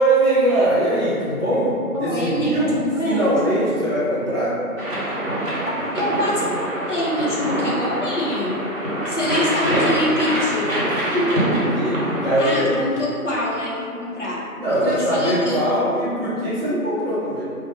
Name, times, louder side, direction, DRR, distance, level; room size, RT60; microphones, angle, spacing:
voice 1, 0.0-2.7 3.0-4.6 9.3-9.4 10.9-12.8 14.6-17.5, right 1 dB, 45° right, -14 dB, 0.6 m, -21 dB
voice 2, 1.9-3.4 5.7-8.6 9.1-10.8 12.4-15.6, left 1 dB, 55° left, -6 dB, 0.6 m, -25 dB
sound 1, 4.8-12.3, right 1 dB, 60° right, 1.0 m, -24 dB
2.1 x 2.1 x 2.9 m, 2.4 s
figure-of-eight pair, 180°, 44 cm